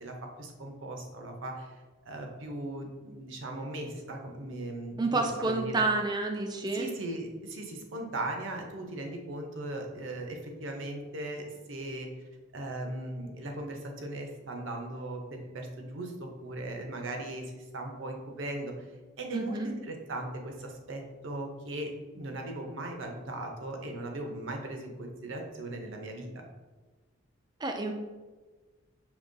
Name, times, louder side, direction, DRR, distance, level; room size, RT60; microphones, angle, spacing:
voice 1, 0.0-1.8 2.0-5.8 6.7-12.1 12.5-18.9 19.2-26.3, right 1 dB, 65° right, 2 dB, 0.6 m, -38 dB
voice 2, 5.0-6.9 19.3-19.7 27.6-27.9, right 3 dB, 20° right, 3 dB, 0.4 m, -29 dB
5.2 x 2.9 x 2.6 m, 1.3 s
head